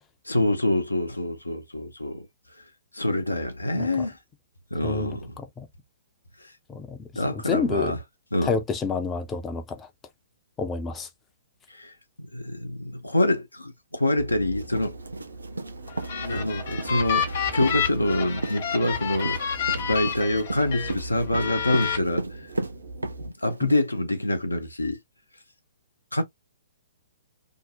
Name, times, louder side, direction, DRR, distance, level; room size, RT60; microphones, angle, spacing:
voice 1, 0.3-2.3 2.9-4.2 4.7-5.4 7.2-8.0 8.3-8.6 11.7-11.9 12.3-15.0 16.2-22.2 23.2-25.0 26.1-26.2, left 1 dB, 80° left, 0.7 m, -26 dB
voice 2, 4.8-5.2 5.6-5.7 6.7-7.9 8.4-9.9 10.6-11.1 23.6-23.7, left 4 dB, 15° left, 0.5 m, -29 dB
sound 1, 14.2-23.3, right 2 dB, 60° right, 0.8 m, -39 dB
sound 2, 14.6-23.7, right 2 dB, 75° right, 0.4 m, -34 dB
sound 3, 15.9-20.9 21.3-22.0, left 8 dB, 45° left, 1.0 m, -29 dB
2.7 x 2.0 x 2.6 m
figure-of-eight pair, 120°, 0 cm